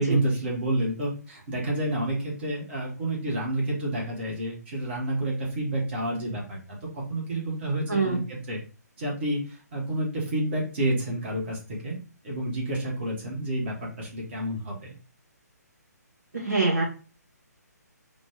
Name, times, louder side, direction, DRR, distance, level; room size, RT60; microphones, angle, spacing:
voice 1, 0.0-8.6 9.0-12.0 12.2-14.9, right 1 dB, 35° right, -3 dB, 1.5 m, -29 dB
voice 2, 7.9-8.2 16.3-16.8, right 3 dB, 75° right, -2 dB, 1.6 m, -24 dB
3.9 x 2.5 x 3.5 m, 0.35 s
figure-of-eight pair, 140°, 9 cm